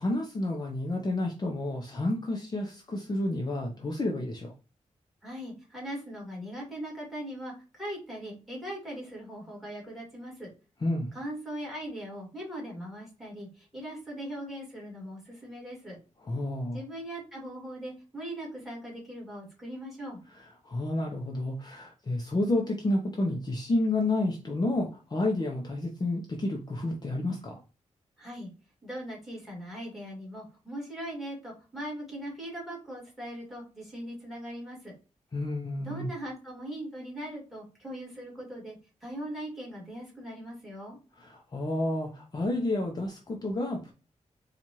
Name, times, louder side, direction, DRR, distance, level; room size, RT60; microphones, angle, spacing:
voice 1, 0.0-4.5 10.8-11.1 16.2-16.8 20.6-27.6 35.3-36.1 41.2-43.9, left 2 dB, 35° left, 0 dB, 0.7 m, -30 dB
voice 2, 5.2-10.5 11.1-16.0 16.7-20.2 28.2-28.5 28.8-34.9 35.8-41.0, equal, ahead, -3 dB, 1.9 m, -40 dB
4.4 x 2.4 x 2.9 m, 0.34 s
wide cardioid pair, 120°, 13 cm